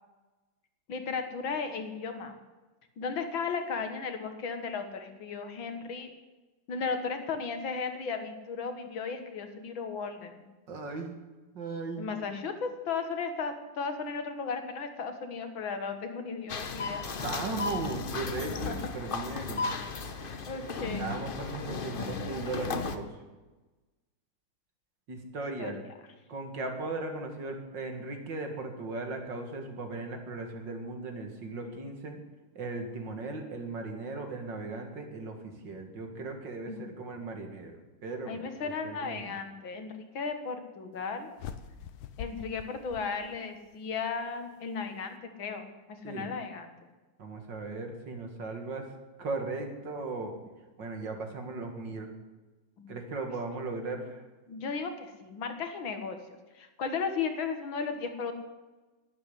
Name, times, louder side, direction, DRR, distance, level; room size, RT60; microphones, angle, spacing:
voice 1, 0.9-2.4 3.0-6.1 6.7-10.4 12.0-17.0 18.7-18.8 20.5-21.1 25.6-25.8 36.7-36.8 38.3-41.3 42.2-46.7 52.8-52.9 54.5-56.2 56.6-58.3, left 5 dB, 65° left, 7 dB, 2.1 m, -35 dB
voice 2, 10.7-11.2 11.5-12.1 17.1-19.7 20.9-23.1 25.1-25.8 26.3-32.2 32.5-37.8 38.0-38.4 38.8-39.4 46.0-46.3 47.2-48.9 49.2-50.3 50.8-52.1 52.9-54.2, right 3 dB, 55° right, 4 dB, 2.5 m, -37 dB
sound 1, 16.5-23.0, left 4 dB, 45° left, 0.6 m, -35 dB
sound 2, 41.4-43.8, left 8 dB, 85° left, 1.7 m, -44 dB
11.5 x 10.5 x 9.8 m, 1.2 s
omnidirectional pair, 2.4 m